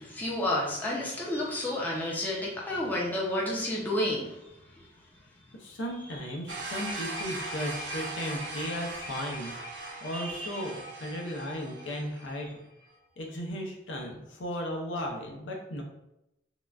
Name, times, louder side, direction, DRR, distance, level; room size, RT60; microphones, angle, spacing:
voice 1, 0.0-4.5 10.1-10.6, left 1 dB, 10° left, -5 dB, 0.5 m, -31 dB
voice 2, 5.6-9.5 10.0-12.5 13.2-15.8, equal, 75° left, 1 dB, 0.6 m, -35 dB
sound 1, 6.5-12.4, right 2 dB, 70° right, 0.7 m, -39 dB
3.7 x 2.2 x 2.3 m, 0.86 s
head